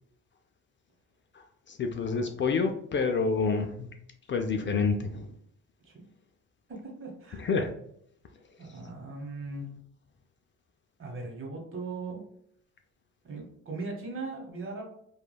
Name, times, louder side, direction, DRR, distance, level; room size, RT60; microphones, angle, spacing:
voice 1, 1.7-3.9 4.3-5.3 7.4-7.7, left 4 dB, 40° left, 5 dB, 0.4 m, -28 dB
voice 2, 6.7-7.5 8.6-9.7 11.0-12.2 13.2-14.8, right 3 dB, 45° right, 0 dB, 1.0 m, -39 dB
3.2 x 2.4 x 2.2 m, 0.70 s
cardioid pair, 90°, 30 cm